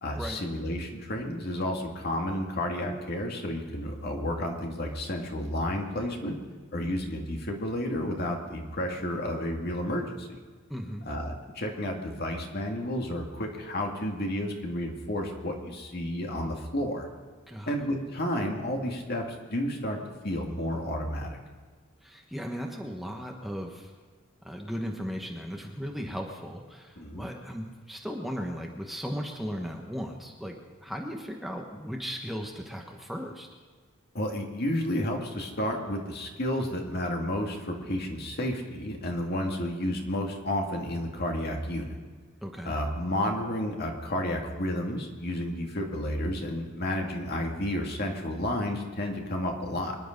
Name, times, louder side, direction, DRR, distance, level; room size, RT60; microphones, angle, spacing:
voice 1, 0.0-6.4 6.7-10.4 11.1-17.1 17.7-20.0 20.2-21.4 27.0-27.3 34.1-41.9 42.6-50.0, left 1 dB, 50° left, 2 dB, 2.3 m, -31 dB
voice 2, 10.7-11.1 17.5-17.7 22.0-23.9 24.4-33.5 42.4-42.8, equal, ahead, 1 dB, 1.2 m, -36 dB
25.0 x 10.5 x 5.2 m, 1.5 s
head